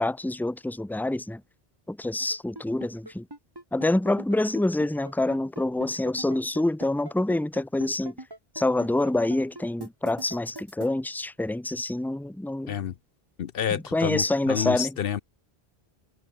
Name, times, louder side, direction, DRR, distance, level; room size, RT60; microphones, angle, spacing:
voice 1, 0.0-1.4 1.9-3.3 3.7-8.1 8.5-12.7 13.7-14.9, left 2 dB, ahead, 1.0 m, -26 dB
sound 1, 2.2-10.9, right 1 dB, 20° right, 3.3 m, -41 dB
voice 2, 13.4-15.2, left 9 dB, 70° left, 0.9 m, -29 dB
omnidirectional pair, 1.0 m